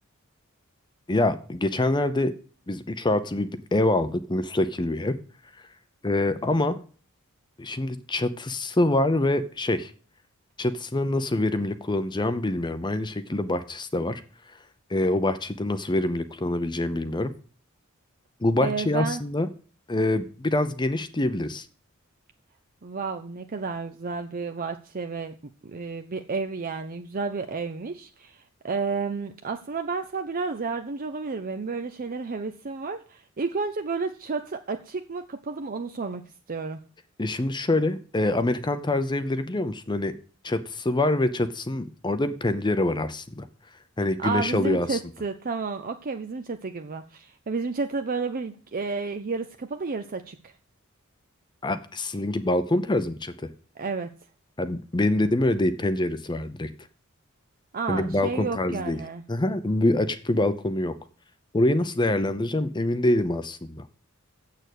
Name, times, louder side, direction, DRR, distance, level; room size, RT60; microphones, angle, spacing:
voice 1, 1.1-2.3 2.7-5.2 6.0-6.8 7.6-9.9 10.6-14.2 14.9-17.3 18.4-19.5 19.9-21.7 37.2-40.1 40.4-43.5 44.0-45.0 51.6-53.3 54.6-56.7 57.9-59.0 59.3-60.9 61.5-63.9, left 1 dB, 20° left, 10 dB, 0.7 m, -25 dB
voice 2, 18.6-19.2 22.8-25.4 25.6-36.2 36.5-36.8 44.2-50.5 53.8-54.1 57.7-59.2, right 4 dB, 45° right, 7 dB, 0.6 m, -31 dB
7.8 x 6.7 x 8.2 m, 0.40 s
head